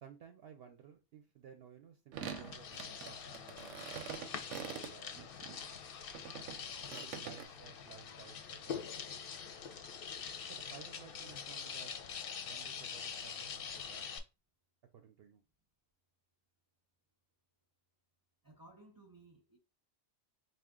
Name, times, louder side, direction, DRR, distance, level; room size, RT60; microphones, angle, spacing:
voice 1, 0.0-3.9 4.7-5.3 6.9-8.8 10.5-11.9 12.4-14.1 14.9-15.4, right 8 dB, 65° right, 0.7 m, -56 dB
sound 1, 2.1-5.6 6.1-7.4, right 8 dB, 90° right, 1.0 m, -45 dB
sound 2, 2.2-14.2, left 7 dB, 60° left, 0.7 m, -45 dB
voice 2, 18.4-19.6, right 2 dB, 25° right, 0.5 m, -58 dB
4.2 x 2.4 x 3.5 m
omnidirectional pair, 1.2 m